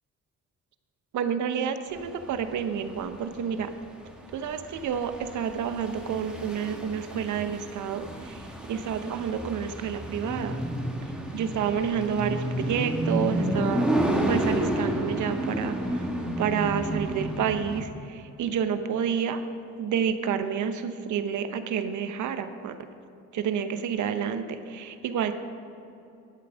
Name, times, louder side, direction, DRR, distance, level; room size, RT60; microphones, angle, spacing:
voice 1, 1.1-3.7 4.3-8.4 8.7-10.6 11.3-13.9 14.3-16.1 16.4-19.4 19.8-22.7 23.3-25.3, right 7 dB, 75° right, 9 dB, 0.9 m, -29 dB
sound 1, 2.0-17.8, right 1 dB, 5° right, 1.6 m, -31 dB
12.0 x 8.5 x 6.2 m, 2.7 s
cardioid pair, 90°, 30 cm